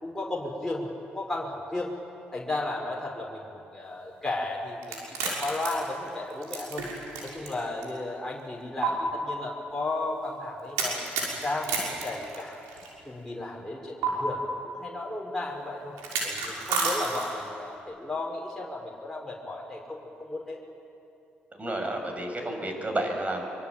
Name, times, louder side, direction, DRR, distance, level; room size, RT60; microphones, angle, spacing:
voice 1, 0.0-1.9 2.3-6.8 7.2-11.1 11.4-12.6 13.1-15.9 16.2-20.6, left 2 dB, 10° left, -3 dB, 5.6 m, -34 dB
sound 1, 4.8-7.5 7.8-7.9 8.8-8.9 10.8-12.9 14.0-14.1 16.0-17.5, right 5 dB, 80° right, 5.9 m, -30 dB
voice 2, 21.6-23.4, right 1 dB, 30° right, 3 dB, 7.4 m, -30 dB
25.0 x 24.5 x 9.0 m, 2.7 s
hypercardioid pair, 50°, 5 cm